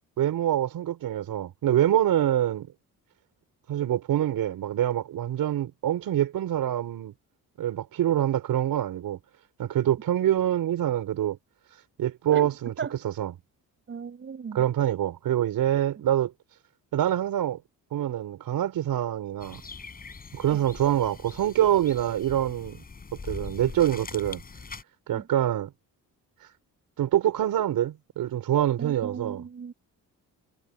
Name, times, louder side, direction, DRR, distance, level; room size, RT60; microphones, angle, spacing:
voice 1, 0.2-2.7 3.7-7.1 7.6-9.2 9.6-11.4 12.0-12.7 13.0-13.3 14.6-16.3 16.9-17.6 17.9-19.6 20.3-22.8 23.3-24.4 25.1-25.7 27.0-29.4, right 11 dB, 70° right, 5.2 m, -25 dB
voice 2, 13.9-14.6 20.5-20.6 25.1-25.3 28.8-29.7, right 6 dB, 35° right, 6.6 m, -37 dB
sound 1, 19.4-24.8, left 4 dB, 25° left, 8.0 m, -42 dB
cardioid pair, 175°, 36 cm